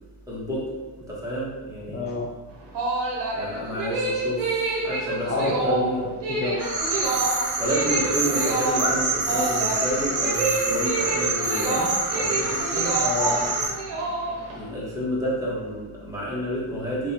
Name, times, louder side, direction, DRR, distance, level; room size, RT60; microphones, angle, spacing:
voice 1, 0.3-0.6 1.1-2.1 3.3-6.0 7.0-7.2 7.6-12.9 14.5-17.1, equal, 5° right, -7 dB, 1.4 m, -30 dB
voice 2, 1.9-2.3 5.2-6.7 12.9-13.5, left 3 dB, 25° left, -2 dB, 0.4 m, -28 dB
sound 1, 2.5-14.6, right 2 dB, 55° right, 1.2 m, -28 dB
sound 2, 6.6-13.7, right 3 dB, 35° right, 0.8 m, -26 dB
3.7 x 3.2 x 4.4 m, 1.2 s
cardioid pair, 135°, 50 cm